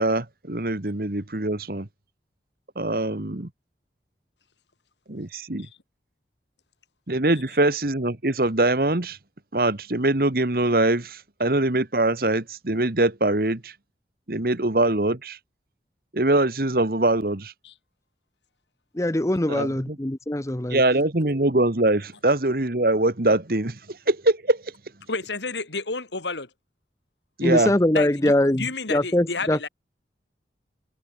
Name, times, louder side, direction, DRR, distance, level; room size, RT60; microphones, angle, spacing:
voice 1, 0.0-1.9 2.7-3.5 5.1-5.7 7.1-9.2 9.5-13.7 14.3-15.4 16.1-17.5 19.5-20.0 20.7-24.6 27.4-27.7, right 2 dB, 55° right, 1.6 m, -23 dB
voice 2, 19.0-20.8 27.4-28.6 28.9-29.7, left 1 dB, 15° left, 0.8 m, -22 dB
voice 3, 25.1-26.5 27.9-29.7, left 3 dB, 90° left, 3.2 m, -31 dB
head